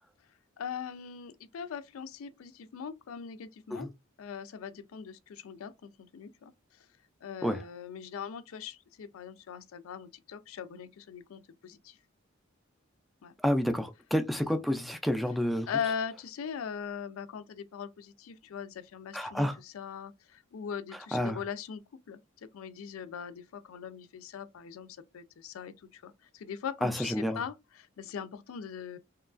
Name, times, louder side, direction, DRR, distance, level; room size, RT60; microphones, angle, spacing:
voice 1, 0.6-3.9 4.2-6.5 7.2-12.0 13.2-13.3 15.7-21.8 22.1-22.2 22.5-29.0, left 7 dB, 85° left, 0.4 m, -40 dB
voice 2, 13.4-15.7 19.1-19.6 21.1-21.4 26.8-27.4, equal, ahead, 0.3 m, -29 dB
2.9 x 2.3 x 2.4 m
head